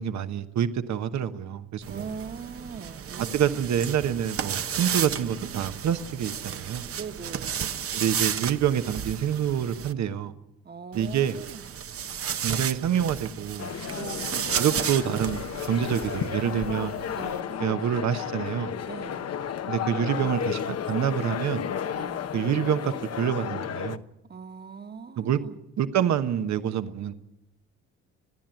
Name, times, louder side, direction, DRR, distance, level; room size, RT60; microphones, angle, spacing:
voice 1, 0.0-2.0 3.3-6.8 7.9-10.3 10.9-11.4 12.4-13.7 14.6-16.9 17.6-18.7 19.7-21.7 22.3-24.0 25.2-25.4 25.8-27.1, right 9 dB, 65° right, 1.2 m, -27 dB
sound 1, 1.8-9.9 10.9-17.4, right 8 dB, 50° right, 0.9 m, -33 dB
voice 2, 1.9-3.7 6.9-7.6 10.6-11.7 13.9-14.4 17.2-17.7 18.2-18.3 18.9-19.3 21.9-22.3 24.2-25.6, right 5 dB, 35° right, 1.5 m, -41 dB
sound 2, 13.6-24.0, left 8 dB, 55° left, 0.9 m, -33 dB
29.5 x 10.5 x 9.1 m
cardioid pair, 90°, 30 cm